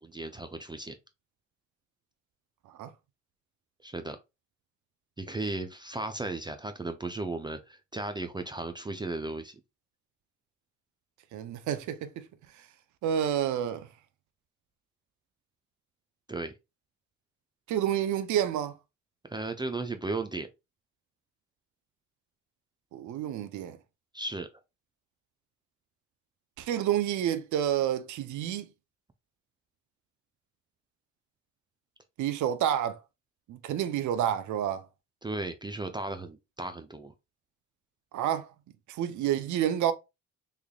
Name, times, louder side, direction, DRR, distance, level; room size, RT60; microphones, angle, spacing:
voice 1, 0.0-0.9 3.8-4.2 5.2-9.6 16.3-16.5 19.3-20.5 24.1-24.5 35.2-37.1, right 2 dB, 15° right, 0.4 m, -35 dB
voice 2, 11.3-12.1 13.0-13.9 17.7-18.8 22.9-23.8 26.6-28.7 32.2-33.0 33.5-34.9 38.1-38.5 38.9-39.9, right 10 dB, 75° right, 0.6 m, -29 dB
3.5 x 3.3 x 2.3 m
cardioid pair, 90°, 30 cm